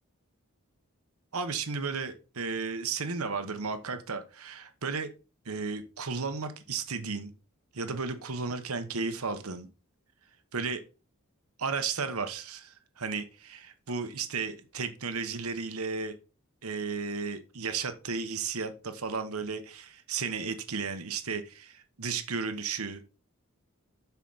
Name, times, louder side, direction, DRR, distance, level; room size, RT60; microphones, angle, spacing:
voice 1, 1.3-5.1 5.4-7.3 7.7-9.7 10.5-10.8 11.6-16.1 16.6-23.0, right 4 dB, 85° right, 8 dB, 1.2 m, -34 dB
8.2 x 5.9 x 4.1 m, 0.33 s
head